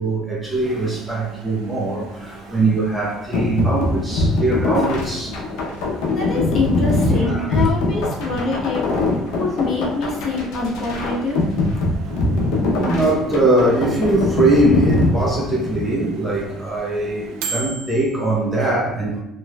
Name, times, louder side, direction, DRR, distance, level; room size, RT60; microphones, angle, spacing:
voice 1, 0.0-5.4 7.1-8.0 12.0-12.4 12.7-19.2, right 2 dB, 15° right, -3 dB, 0.7 m, -21 dB
Microwave oven, 0.6-18.4, right 4 dB, 85° right, 0.4 m, -39 dB
sound 1, 3.3-15.9, left 2 dB, 85° left, 0.6 m, -22 dB
voice 2, 5.8-8.8 9.4-11.4, left 3 dB, 45° left, -2 dB, 0.9 m, -25 dB
3.1 x 3.1 x 2.2 m, 0.88 s
cardioid pair, 115°, 0 cm